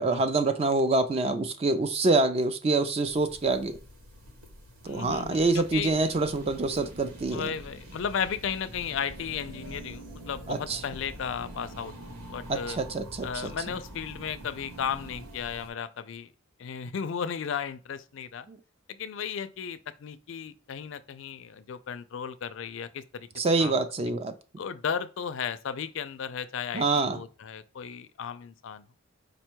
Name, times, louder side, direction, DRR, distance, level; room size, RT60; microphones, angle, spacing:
voice 1, 0.0-3.8 4.8-7.5 10.5-10.8 12.5-13.5 18.5-18.6 23.4-24.3 26.7-27.2, right 3 dB, 25° right, 0.3 m, -26 dB
sound 1, 3.0-15.7, equal, 90° right, 1.3 m, -48 dB
voice 2, 4.8-6.0 7.3-12.8 13.2-16.3 16.6-18.5 18.9-23.3 23.6-23.8 24.6-28.8, left 7 dB, 60° left, 0.4 m, -35 dB
sound 2, 5.2-15.3, right 1 dB, 75° right, 0.9 m, -48 dB
5.1 x 2.2 x 4.4 m
head